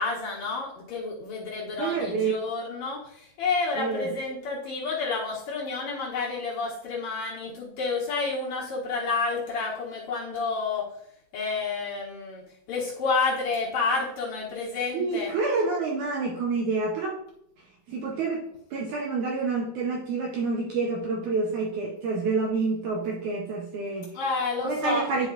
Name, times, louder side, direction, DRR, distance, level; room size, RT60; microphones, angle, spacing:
voice 1, 0.0-10.9 11.3-12.4 12.7-15.3 24.1-25.1, left 4 dB, 60° left, -6 dB, 2.3 m, -29 dB
voice 2, 1.8-2.3 3.8-4.1 14.9-17.1 17.9-18.5 18.7-24.1 24.6-25.3, right 4 dB, 70° right, -1 dB, 1.9 m, -28 dB
10.5 x 5.1 x 2.5 m, 0.71 s
omnidirectional pair, 4.3 m